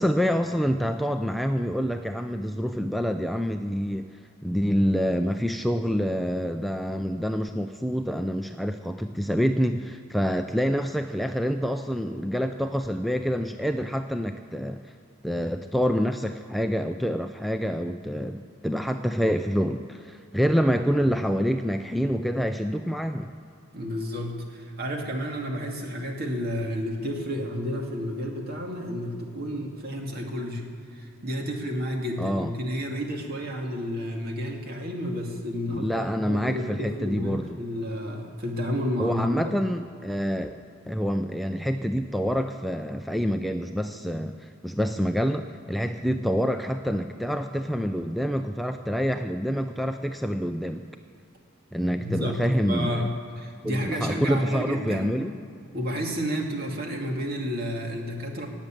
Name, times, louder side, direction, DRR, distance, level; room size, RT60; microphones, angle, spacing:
voice 1, 0.0-4.1 4.4-14.8 15.2-23.3 32.2-32.5 35.7-37.6 39.0-40.5 40.8-50.9 51.7-53.1 53.6-55.4, equal, ahead, 6 dB, 0.4 m, -27 dB
voice 2, 23.7-39.5 52.0-52.4 52.7-55.1 55.7-58.5, equal, 50° right, 1 dB, 2.2 m, -31 dB
17.5 x 7.3 x 9.0 m, 2.4 s
head